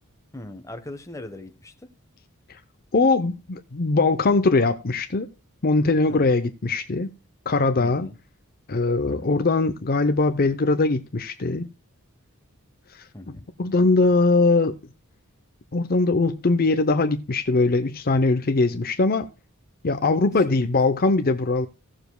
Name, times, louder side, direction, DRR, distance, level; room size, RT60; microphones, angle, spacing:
voice 1, 0.3-1.7 6.1-6.3 7.8-8.1 9.0-9.4 13.1-13.5 20.5-20.6, left 1 dB, 15° left, 1.1 m, -39 dB
voice 2, 2.9-5.3 5.6-7.1 7.5-8.1 8.7-11.7 13.6-14.8 15.7-19.3 19.8-21.7, left 3 dB, 45° left, 0.7 m, -21 dB
17.0 x 7.0 x 2.2 m
head